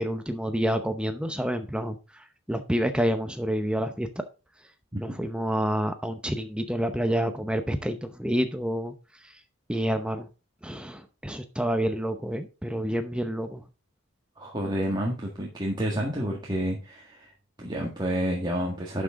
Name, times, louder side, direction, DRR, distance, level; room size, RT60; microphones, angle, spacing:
voice 1, 0.0-4.1 5.0-8.9 9.7-10.3 10.6-13.6, equal, 5° right, 8 dB, 0.7 m, -28 dB
voice 2, 14.4-17.3 17.6-19.0, equal, 20° right, -2 dB, 1.7 m, -29 dB
11.0 x 6.1 x 3.7 m, 0.31 s
head